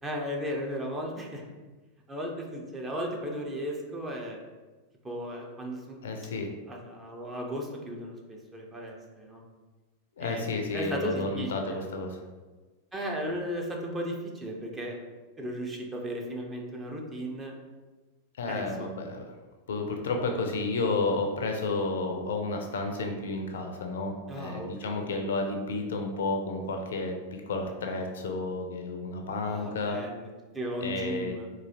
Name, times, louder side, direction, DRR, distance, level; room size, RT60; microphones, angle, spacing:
voice 1, 0.0-1.4 2.1-4.4 5.0-6.0 6.7-9.4 10.2-11.8 12.9-15.0 15.4-17.5 18.5-18.9 24.3-25.1 29.4-30.3 30.5-31.5, equal, 15° right, 0 dB, 0.7 m, -35 dB
voice 2, 6.0-6.5 10.2-12.2 18.4-19.3 19.7-27.2 27.5-30.0 30.8-31.4, left 3 dB, 60° left, 4 dB, 0.4 m, -31 dB
3.9 x 2.7 x 2.7 m, 1.3 s
figure-of-eight pair, 90°, 0 cm